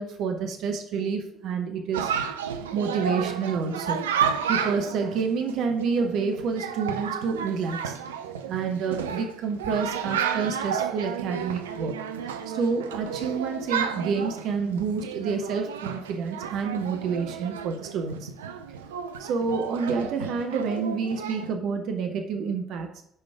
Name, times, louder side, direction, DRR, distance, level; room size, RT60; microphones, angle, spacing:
voice 1, 0.0-2.1 2.7-4.1 4.5-8.0 8.5-12.0 12.2-18.3 19.2-23.0, right 5 dB, 60° right, 4 dB, 0.8 m, -28 dB
Chatter, 1.9-21.5, right 7 dB, 75° right, 0.4 m, -32 dB
5.6 x 5.0 x 6.0 m, 0.71 s
figure-of-eight pair, 50°, 0 cm